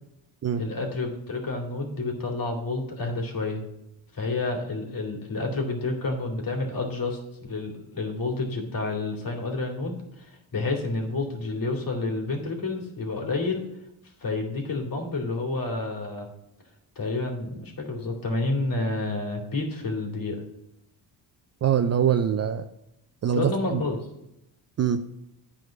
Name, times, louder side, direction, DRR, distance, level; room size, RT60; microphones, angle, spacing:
voice 1, 0.6-3.6 4.1-13.6 14.2-16.3 17.0-20.4 23.3-24.1, left 3 dB, 45° left, 2 dB, 2.5 m, -29 dB
voice 2, 21.6-22.7 23.2-23.8 24.8-25.0, right 9 dB, 35° right, 9 dB, 0.5 m, -23 dB
9.2 x 3.9 x 7.0 m, 0.84 s
hypercardioid pair, 60°, 49 cm